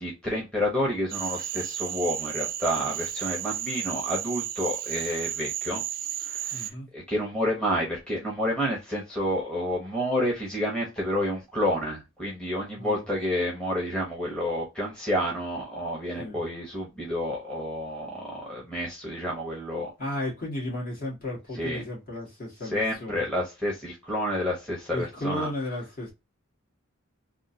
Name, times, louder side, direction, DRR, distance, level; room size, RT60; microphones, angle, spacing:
voice 1, 0.0-5.8 6.3-19.9 21.6-21.8 22.7-25.5, equal, 5° left, 1.0 m, -29 dB
Cricket / Frog, 1.1-6.7, right 11 dB, 45° right, 0.3 m, -33 dB
voice 2, 6.5-6.9 12.7-13.1 16.2-16.5 20.0-23.2 24.9-26.1, left 1 dB, 45° left, 1.9 m, -34 dB
3.6 x 2.4 x 2.7 m
head